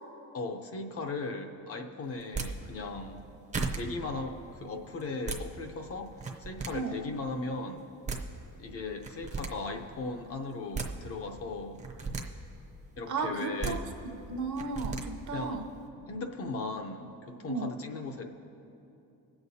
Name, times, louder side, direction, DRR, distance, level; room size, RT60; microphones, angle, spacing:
voice 1, 0.3-3.2 3.7-6.1 6.4-7.9 8.6-11.8 13.0-13.8 15.3-15.7 16.1-18.2, left 3 dB, 40° left, 4 dB, 0.7 m, -37 dB
sound 1, 2.2-2.5 3.2-3.3 3.5-3.8 5.0-5.4 6.1-6.7 7.8-7.9 8.1-8.2 9.0-9.5 10.5-10.9 11.8-12.2 13.4-13.7 14.6-15.0, right 4 dB, 20° right, 0.6 m, -34 dB
voice 2, 13.1-15.6 17.5-17.7, right 4 dB, 60° right, 4 dB, 0.8 m, -34 dB
22.5 x 7.9 x 2.7 m, 2.8 s
cardioid pair, 175°, 34 cm